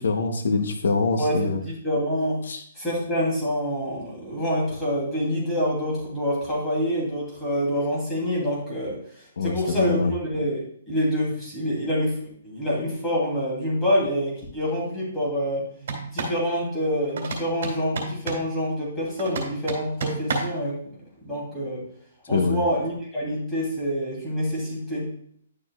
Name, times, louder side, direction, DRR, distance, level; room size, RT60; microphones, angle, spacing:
voice 1, 0.0-1.6 2.4-2.6 9.4-10.1 22.3-22.6, left 4 dB, 80° left, 6 dB, 0.9 m, -24 dB
voice 2, 1.2-2.5 2.8-9.0 9.4-15.7 16.1-20.8 21.2-21.8 22.3-25.1, equal, 5° left, -7 dB, 3.0 m, -26 dB
sound 1, 15.8-16.4 17.2-18.5 19.2-20.6, right 4 dB, 60° right, 2.4 m, -31 dB
10.5 x 6.5 x 2.4 m, 0.63 s
hypercardioid pair, 170°, 0 cm